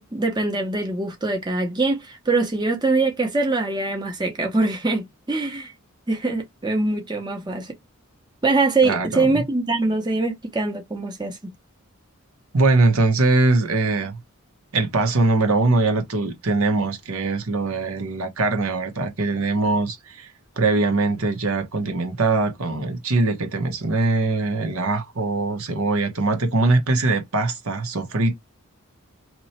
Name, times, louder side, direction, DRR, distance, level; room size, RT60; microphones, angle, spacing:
voice 1, 0.0-5.7 6.1-7.7 8.4-11.5, right 3 dB, 20° right, 0.7 m, -23 dB
voice 2, 8.8-9.5 12.5-14.2 14.7-20.3 20.6-28.4, right 3 dB, 75° right, 0.9 m, -22 dB
3.0 x 2.2 x 4.1 m
head